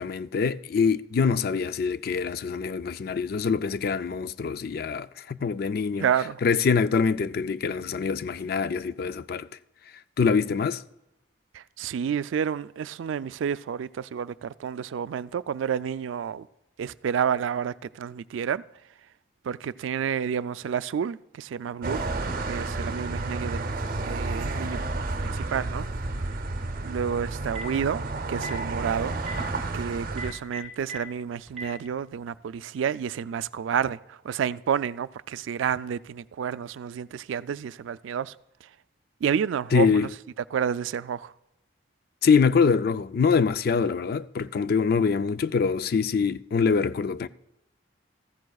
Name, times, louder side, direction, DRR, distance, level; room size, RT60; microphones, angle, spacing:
voice 1, 0.0-6.1 6.4-9.5 10.2-10.8 39.7-40.1 42.2-47.3, left 5 dB, 50° left, 0.3 m, -24 dB
voice 2, 6.0-6.4 11.5-16.5 16.8-18.6 19.4-22.0 22.5-25.0 25.2-25.9 26.8-28.0 28.3-29.1 29.7-38.4 39.2-40.1 40.5-41.3, right 7 dB, 85° right, 0.3 m, -30 dB
sound 1, 21.8-30.3, right 2 dB, 50° right, 0.7 m, -31 dB
Telephone, 27.6-27.8 28.3-28.6 29.2-29.3 30.1-31.0 31.5-31.6, right 4 dB, ahead, 4.0 m, -36 dB
15.5 x 14.5 x 2.3 m
head